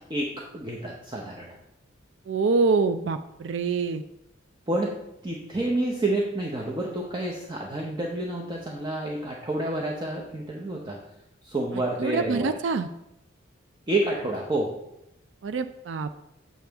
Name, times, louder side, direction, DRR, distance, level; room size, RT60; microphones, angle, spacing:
voice 1, 0.1-1.6 4.7-5.0 5.2-11.0 11.4-12.6 13.9-14.7, right 2 dB, 20° right, -1 dB, 0.7 m, -29 dB
voice 2, 2.3-4.0 12.0-12.9 15.4-16.3, right 4 dB, 65° right, 10 dB, 0.4 m, -25 dB
7.6 x 6.9 x 3.4 m, 0.85 s
head